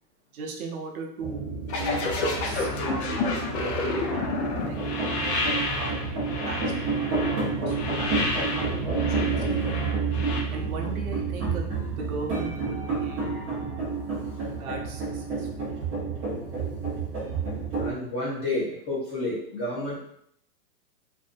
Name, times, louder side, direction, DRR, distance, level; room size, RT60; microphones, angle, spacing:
voice 1, 0.3-1.4 1.8-5.4 5.7-6.6 6.9-9.3 9.6-9.7 10.5-11.6 12.0-13.8 14.4-15.7, right 4 dB, 60° right, 0 dB, 0.7 m, -38 dB
sound 1, 1.2-17.9, right 4 dB, 20° right, 0.6 m, -30 dB
sound 2, 1.7-10.4, left 3 dB, 45° left, 0.5 m, -30 dB
voice 2, 17.8-20.0, left 2 dB, 15° left, -8 dB, 0.8 m, -30 dB
2.5 x 2.0 x 2.5 m, 0.69 s
hypercardioid pair, 135°, 48 cm